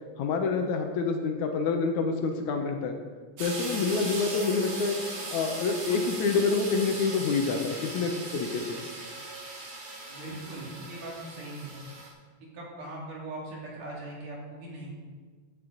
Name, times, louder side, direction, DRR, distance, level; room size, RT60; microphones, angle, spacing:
voice 1, 0.2-3.0 3.4-5.0 5.3-8.9, left 4 dB, 70° left, 4 dB, 2.1 m, -27 dB
sound 1, 3.4-12.1, right 2 dB, 45° right, 2.5 m, -38 dB
voice 2, 10.1-11.8 12.5-14.9, right 2 dB, 70° right, -3 dB, 4.0 m, -40 dB
14.5 x 9.7 x 3.9 m, 1.5 s
omnidirectional pair, 3.8 m